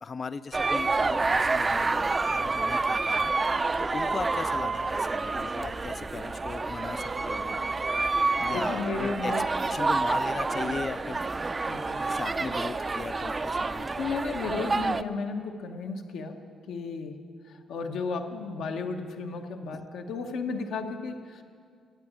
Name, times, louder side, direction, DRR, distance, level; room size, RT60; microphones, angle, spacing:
voice 1, 0.0-7.6 8.4-11.2 12.0-14.2 19.7-19.8, left 4 dB, 35° left, 13 dB, 0.3 m, -38 dB
sound 1, 0.5-15.0, right 3 dB, 25° right, 0.4 m, -28 dB
voice 2, 8.5-9.5 11.6-12.0 14.0-16.4 16.7-17.2 17.5-21.4, left 4 dB, 75° left, 4 dB, 1.1 m, -34 dB
12.0 x 9.0 x 8.7 m, 2.1 s
cardioid pair, 90°, 0 cm